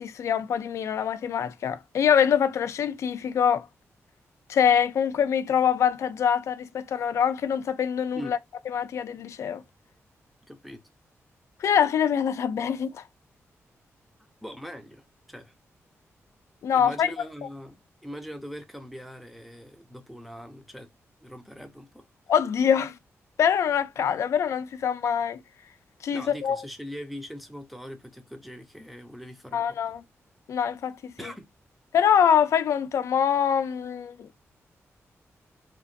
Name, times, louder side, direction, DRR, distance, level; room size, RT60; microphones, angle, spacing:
voice 1, 0.0-3.7 4.5-8.4 8.7-9.6 11.6-13.0 16.6-17.1 22.3-23.0 23.4-25.4 26.0-26.6 29.5-30.0 30.5-31.1 31.9-34.5, left 8 dB, 70° left, 0.4 m, -24 dB
voice 2, 10.5-10.8 14.4-15.5 16.7-20.9 21.2-22.1 26.1-29.8 31.2-31.5, equal, ahead, 0.5 m, -41 dB
2.9 x 2.5 x 2.5 m
wide cardioid pair, 175°, 5 cm